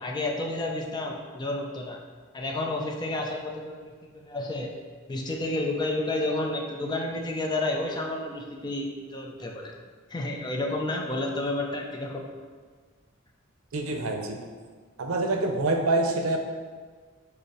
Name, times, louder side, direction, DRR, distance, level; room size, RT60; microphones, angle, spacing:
voice 1, 0.0-2.0 2.3-4.7 5.1-9.7 10.1-12.2, left 2 dB, 20° left, 1 dB, 0.4 m, -30 dB
voice 2, 13.7-14.4 15.0-16.4, right 2 dB, 90° right, 4 dB, 0.5 m, -26 dB
5.1 x 2.0 x 4.6 m, 1.6 s
head